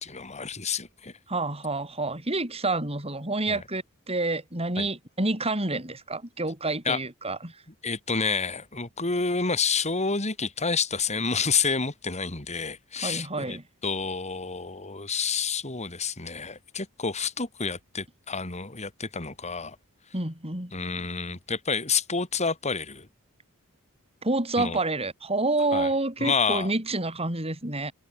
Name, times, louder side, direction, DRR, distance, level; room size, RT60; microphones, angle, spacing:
voice 1, 0.0-1.1 3.5-3.6 4.8-4.9 6.8-7.0 7.8-13.6 13.8-19.8 20.7-23.1 24.6-24.8 25.7-25.9 26.2-26.7, left 5 dB, 30° left, 3.2 m, -29 dB
voice 2, 1.3-7.6 13.0-13.6 20.1-20.7 24.2-27.9, right 2 dB, 25° right, 7.9 m, -28 dB
head